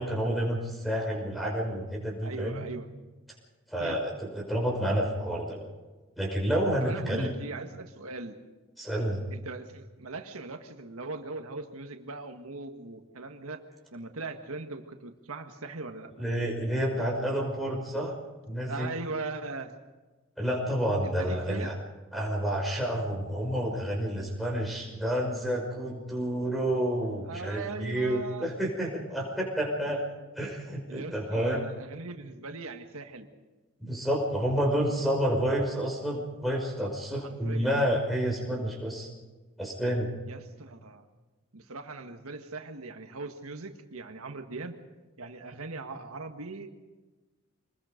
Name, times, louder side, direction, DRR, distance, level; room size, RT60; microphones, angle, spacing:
voice 1, 0.0-2.6 3.7-5.7 6.2-7.3 8.8-9.2 16.2-18.2 18.5-18.9 20.4-21.8 22.1-30.0 30.4-31.6 33.8-39.1 39.6-40.1, equal, ahead, 0 dB, 5.5 m, -29 dB
voice 2, 2.2-2.9 3.8-4.0 6.8-8.4 9.3-13.6 13.9-16.1 18.7-19.7 21.0-21.8 27.2-28.5 29.9-30.0 30.9-33.3 37.2-37.7 40.3-41.1 41.5-44.8 45.2-46.7, right 3 dB, 90° right, 6 dB, 1.7 m, -40 dB
26.0 x 21.0 x 5.2 m, 1.2 s
head